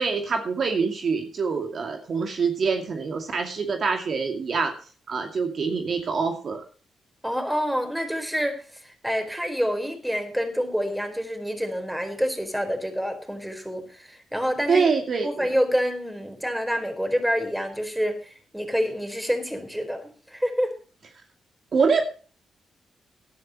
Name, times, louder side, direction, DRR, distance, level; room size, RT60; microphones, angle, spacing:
voice 1, 0.0-4.7 5.1-6.6 14.7-15.5 21.7-22.1, right 5 dB, 55° right, 4 dB, 2.4 m, -25 dB
voice 2, 7.2-14.9 15.2-20.7, equal, 5° right, 6 dB, 4.4 m, -27 dB
17.5 x 11.5 x 3.0 m, 0.38 s
supercardioid pair, 60°, 0 cm